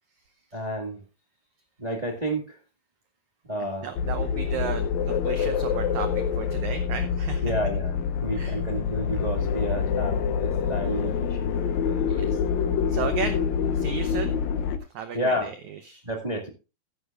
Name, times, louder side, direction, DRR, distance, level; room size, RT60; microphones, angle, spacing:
voice 1, 0.5-1.0 1.8-2.6 3.5-3.9 7.4-11.5 13.0-13.1 15.1-15.5 16.0-16.5, equal, 35° right, 2 dB, 0.6 m, -30 dB
voice 2, 3.6-7.6 8.3-8.6 12.1-12.4 12.9-13.4 13.7-14.3 14.9-16.0, right 8 dB, 80° right, 9 dB, 1.7 m, -34 dB
sound 1, 4.0-14.8, left 7 dB, 70° left, 1.8 m, -26 dB
14.5 x 11.5 x 2.4 m, 0.29 s
omnidirectional pair, 4.6 m